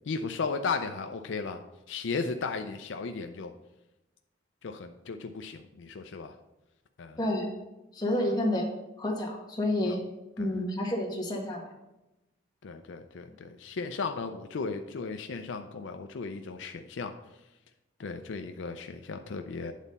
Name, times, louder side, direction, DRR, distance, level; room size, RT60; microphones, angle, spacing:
voice 1, 0.0-1.6 1.9-3.5 4.6-6.4 7.0-7.2 9.9-10.0 10.4-10.5 12.6-17.4 18.0-19.7, left 4 dB, 70° left, 6 dB, 0.5 m, -35 dB
voice 2, 7.2-7.5 7.9-8.7 9.0-10.0 10.4-11.7, left 1 dB, 20° left, -1 dB, 1.4 m, -29 dB
9.1 x 4.1 x 5.3 m, 0.98 s
head